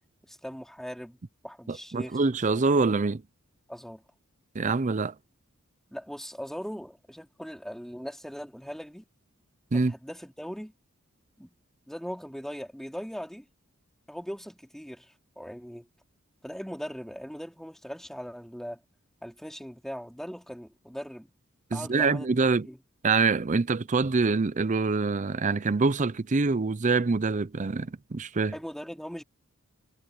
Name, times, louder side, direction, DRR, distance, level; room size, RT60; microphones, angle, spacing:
voice 1, 0.2-1.2 1.4-2.2 3.7-4.0 5.9-9.1 9.7-10.7 11.4-11.5 11.9-13.5 14.1-15.9 16.4-18.8 19.2-21.3 21.7-22.3 22.6-22.8 28.5-29.2, equal, ahead, 4.5 m, -40 dB
voice 2, 1.7-3.2 4.5-5.1 9.7-9.9 21.7-22.7 23.0-28.5, right 4 dB, 35° right, 0.6 m, -25 dB
head